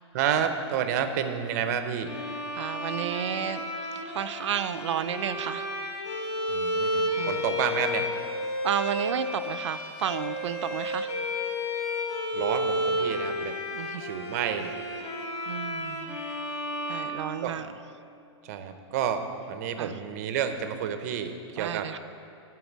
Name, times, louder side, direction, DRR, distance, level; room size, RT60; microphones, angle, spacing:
voice 1, 0.1-2.1 6.5-8.1 12.3-13.6 14.0-14.8 17.4-17.6 18.4-21.9, right 8 dB, 35° right, 8 dB, 0.6 m, -30 dB
Bowed string instrument, 2.0-17.9, left 1 dB, 35° left, 1.2 m, -32 dB
voice 2, 2.5-3.7 4.0-5.7 7.2-7.4 8.6-11.1 13.7-14.0 15.5-16.2 16.9-17.7 19.8-19.9 21.6-22.0, right 9 dB, 80° right, 10 dB, 0.4 m, -32 dB
11.5 x 4.6 x 7.3 m, 2.5 s
supercardioid pair, 170°, 15 cm